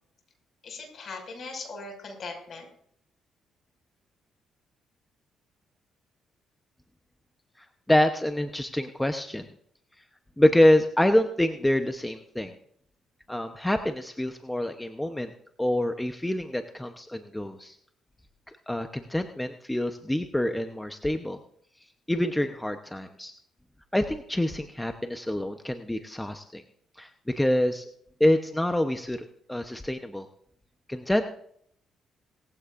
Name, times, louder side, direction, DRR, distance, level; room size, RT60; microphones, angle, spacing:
voice 1, 0.6-2.7, left 3 dB, 55° left, 3 dB, 5.9 m, -39 dB
voice 2, 7.6-9.5 10.4-12.5 13.3-15.3 15.6-17.8 18.7-21.4 22.1-23.3 23.9-26.6 27.0-27.8 28.2-30.3 30.9-31.2, left 1 dB, 10° left, 7 dB, 0.9 m, -26 dB
19.5 x 15.0 x 2.6 m, 0.66 s
cardioid pair, 90°, 0 cm